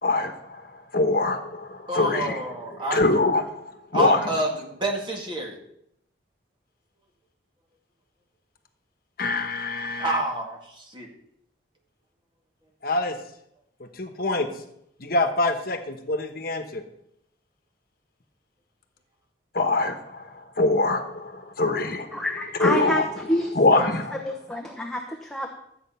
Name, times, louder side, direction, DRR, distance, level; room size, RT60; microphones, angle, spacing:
voice 1, 0.0-2.4 2.7-4.3 9.2-10.2 12.8-13.2 13.8-14.5 15.0-16.8 19.5-22.2 22.6-23.1 23.5-24.2, left 2 dB, 55° left, 7 dB, 1.2 m, -24 dB
voice 2, 1.9-3.0 3.9-5.6 10.0-11.1, right 1 dB, 25° right, 0 dB, 2.1 m, -28 dB
voice 3, 22.1-23.9 24.2-25.5, left 1 dB, 5° left, 0 dB, 0.9 m, -28 dB
13.0 x 8.4 x 5.7 m, 0.76 s
head